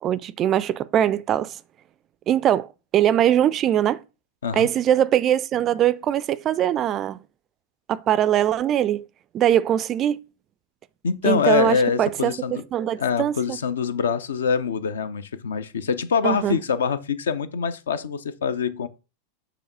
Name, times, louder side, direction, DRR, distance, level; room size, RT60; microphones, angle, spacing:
voice 1, 0.0-1.6 2.3-4.0 4.5-7.2 7.9-9.0 9.3-10.2 11.2-13.6 16.2-16.6, right 11 dB, 30° right, 0.3 m, -22 dB
voice 2, 11.0-12.6 13.0-18.9, left 6 dB, 65° left, 0.5 m, -24 dB
6.9 x 3.0 x 5.3 m
figure-of-eight pair, 90°, 0 cm